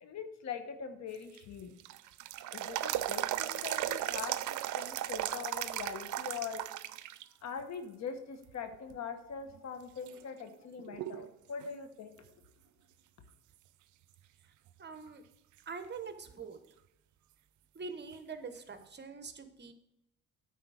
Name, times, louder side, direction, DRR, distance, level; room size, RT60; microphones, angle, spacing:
voice 1, 0.0-1.7 2.5-6.6 7.4-12.2, left 6 dB, 65° left, 8 dB, 1.1 m, -42 dB
sound 1, 1.1-7.2 7.6-7.7 8.5-9.0 9.5-9.6 10.1-11.3 11.6-11.7 15.1-15.2 18.1-18.2, right 14 dB, 75° right, 0.5 m, -36 dB
voice 2, 14.8-15.2 15.7-16.6 17.7-19.7, right 5 dB, 35° right, 8 dB, 1.0 m, -44 dB
9.4 x 4.2 x 6.2 m, 0.84 s
cardioid pair, 90°, 30 cm